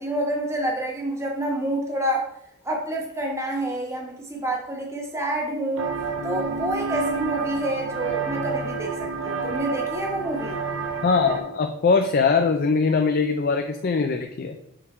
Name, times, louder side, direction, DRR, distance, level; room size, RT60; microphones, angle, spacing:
voice 1, 0.0-2.3 2.6-5.9 6.2-10.6, right 1 dB, 15° right, 0 dB, 1.1 m, -28 dB
sound 1, 5.8-11.4, right 4 dB, 80° right, 1.1 m, -29 dB
voice 2, 11.0-14.6, left 4 dB, 50° left, 5 dB, 0.4 m, -21 dB
6.6 x 3.6 x 4.3 m, 0.78 s
head